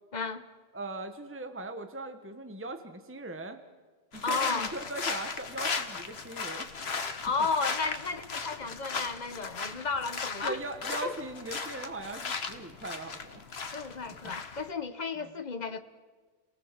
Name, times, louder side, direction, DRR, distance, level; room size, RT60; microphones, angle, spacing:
voice 1, 0.1-0.4 4.2-4.7 7.2-10.6 11.0-11.2 13.7-15.8, left 4 dB, 45° left, 10 dB, 1.3 m, -33 dB
voice 2, 0.7-3.6 4.1-6.7 10.4-13.4 14.2-14.3, right 2 dB, 15° right, 7 dB, 1.1 m, -40 dB
sound 1, 4.1-14.7, left 5 dB, 85° left, 1.5 m, -37 dB
30.0 x 18.5 x 7.4 m, 1.4 s
omnidirectional pair, 1.0 m